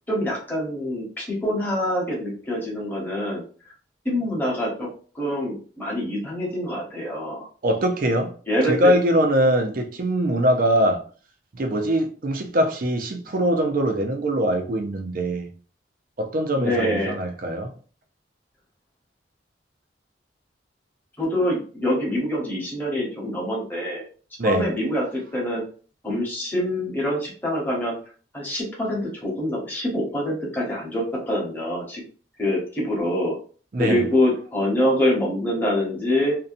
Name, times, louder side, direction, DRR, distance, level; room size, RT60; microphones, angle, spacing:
voice 1, 0.1-3.4 4.0-4.9 5.1-7.5 8.5-8.9 16.6-17.1 21.2-24.0 24.4-25.6 26.0-27.9 28.3-32.0 32.4-33.4 33.8-36.4, left 1 dB, 10° left, 1.0 m, -25 dB
voice 2, 7.6-8.3 8.7-11.0 11.5-15.5 16.2-17.7 24.4-24.7 33.7-34.1, right 1 dB, 50° right, 0.5 m, -22 dB
2.7 x 2.2 x 2.5 m
head